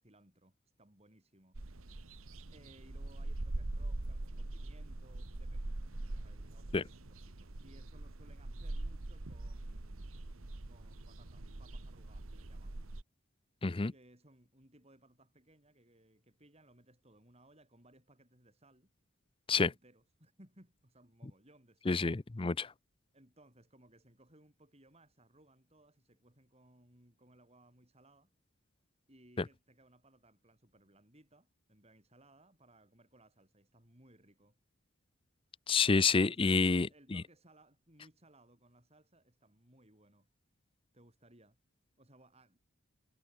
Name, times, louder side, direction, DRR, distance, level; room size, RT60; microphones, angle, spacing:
voice 1, 0.0-1.6 2.5-5.8 6.1-12.8 13.9-18.9 19.6-22.1 23.1-28.3 29.1-34.6 36.3-40.3 40.9-41.6 42.0-42.6, right 1 dB, 30° right, 7.9 m, -64 dB
sound 1, 1.5-13.0, right 2 dB, 85° right, 1.4 m, -42 dB
voice 2, 21.9-22.7 35.7-37.2, left 4 dB, 25° left, 0.5 m, -28 dB
head